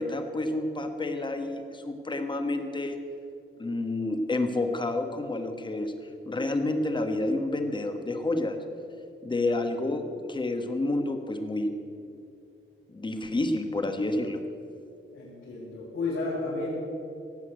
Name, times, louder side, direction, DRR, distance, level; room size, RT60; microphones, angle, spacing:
voice 1, 0.0-3.0 3.6-8.6 9.2-11.7 12.9-14.4, left 2 dB, 20° left, 6 dB, 1.3 m, -29 dB
voice 2, 15.1-16.7, left 3 dB, 80° left, -8 dB, 4.8 m, -32 dB
17.5 x 8.3 x 8.2 m, 2.5 s
wide cardioid pair, 155°, 21 cm